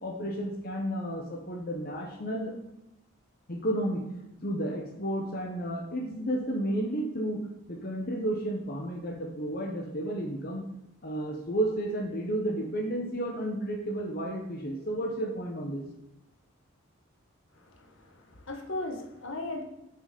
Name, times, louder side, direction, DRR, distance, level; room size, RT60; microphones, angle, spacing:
voice 1, 0.0-2.5 3.5-4.0 4.4-10.7 11.0-15.8, right 1 dB, 45° left, 0 dB, 1.0 m, -32 dB
voice 2, 17.5-19.6, left 2 dB, 70° left, 4 dB, 1.2 m, -37 dB
6.5 x 6.2 x 5.3 m, 0.90 s
head